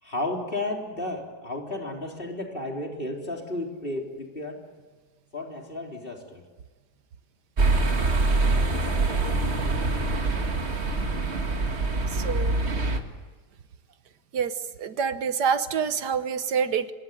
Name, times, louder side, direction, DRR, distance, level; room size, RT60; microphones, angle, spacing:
voice 1, 0.0-4.6 5.3-6.4, left 1 dB, 30° left, 1 dB, 4.0 m, -33 dB
sound 1, 7.6-13.0, right 3 dB, 40° right, 2.1 m, -24 dB
voice 2, 12.1-12.6 14.3-14.5 14.8-16.9, right 6 dB, 85° right, 11 dB, 1.7 m, -26 dB
26.5 x 20.5 x 9.2 m, 1.4 s
omnidirectional pair, 1.7 m